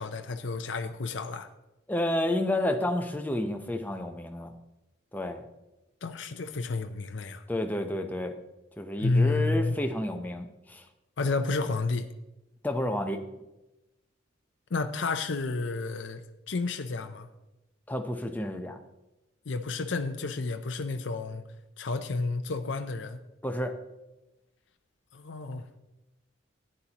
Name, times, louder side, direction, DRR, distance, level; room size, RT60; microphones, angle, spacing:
voice 1, 0.0-1.5 6.0-7.4 9.0-9.8 11.2-12.0 14.7-16.2 16.5-17.3 19.5-21.4 21.8-23.2 25.1-25.7, left 3 dB, 65° left, 7 dB, 0.6 m, -30 dB
voice 2, 1.9-4.5 5.1-5.4 7.5-8.4 8.8-10.9 12.6-13.2 17.9-18.8 23.4-23.7, left 1 dB, 10° left, 4 dB, 0.7 m, -30 dB
14.0 x 9.9 x 2.9 m, 0.99 s
head